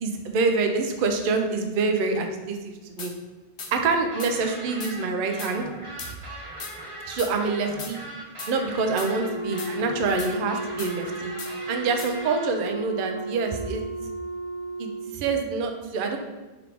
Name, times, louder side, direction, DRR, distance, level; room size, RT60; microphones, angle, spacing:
voice 1, 0.0-3.1 3.7-5.6 7.1-8.0 8.5-13.8 14.8-16.2, right 4 dB, 60° right, 4 dB, 0.6 m, -26 dB
sound 1, 3.0-3.1 3.6-3.7 4.2-4.3 4.8-4.9 5.4-5.5 6.0-6.1 6.6-6.7 7.2-7.3 7.8-7.9 8.4-8.5 9.0-9.1 9.6-9.7 10.2-10.3 10.8-10.9 11.4-11.5 12.0-12.1, left 4 dB, 55° left, 0.3 m, -37 dB
sound 2, 4.1-12.5, right 1 dB, 30° right, 1.1 m, -40 dB
Wind instrument woodwind instrument, 9.1-15.2, right 1 dB, 90° left, 1.0 m, -34 dB
3.6 x 3.3 x 3.3 m, 1.2 s
omnidirectional pair, 1.1 m